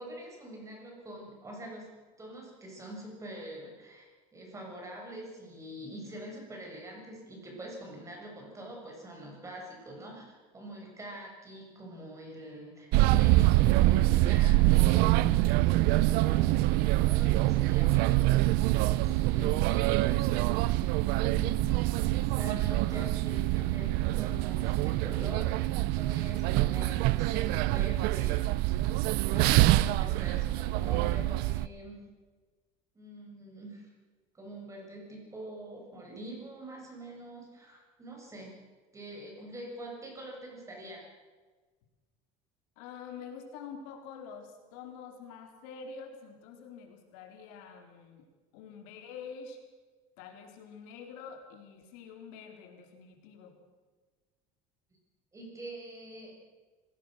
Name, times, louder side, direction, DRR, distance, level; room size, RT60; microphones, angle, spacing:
voice 1, 0.0-1.9 2.2-15.2 15.8-16.7 17.0-18.4 18.8-20.3 21.1-28.5 29.3-32.0 32.9-33.9 34.3-38.5 38.9-41.0 55.3-56.5, right 1 dB, 15° right, 0 dB, 7.0 m, -45 dB
sound 1, 12.9-31.7, right 17 dB, 65° right, 0.7 m, -25 dB
voice 2, 42.8-48.3 48.5-49.6 50.2-53.5, left 6 dB, 80° left, 3 dB, 4.1 m, -46 dB
25.5 x 17.5 x 6.6 m, 1.4 s
cardioid pair, 145°, 17 cm